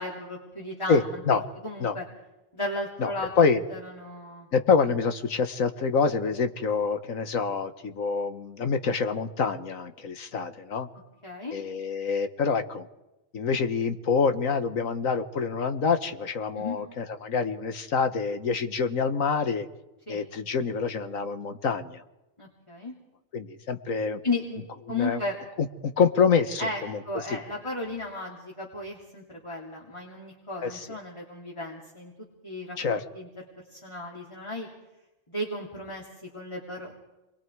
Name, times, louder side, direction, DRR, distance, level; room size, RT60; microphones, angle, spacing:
voice 1, 0.0-2.0 2.5-4.5 11.2-11.6 16.6-16.8 20.1-20.2 22.4-22.9 24.2-25.4 26.6-32.1 32.4-33.3 33.6-34.7 35.3-37.0, left 2 dB, 20° left, -3 dB, 3.1 m, -35 dB
voice 2, 0.9-1.4 1.8-2.0 3.0-3.6 4.5-10.9 11.5-12.9 13.3-19.7 20.1-22.0 23.3-24.2 24.9-25.2 25.6-27.0 27.3-27.4 30.6-30.9 32.8-33.0, left 5 dB, 85° left, 9 dB, 1.8 m, -26 dB
28.0 x 22.5 x 4.8 m, 0.99 s
omnidirectional pair, 1.4 m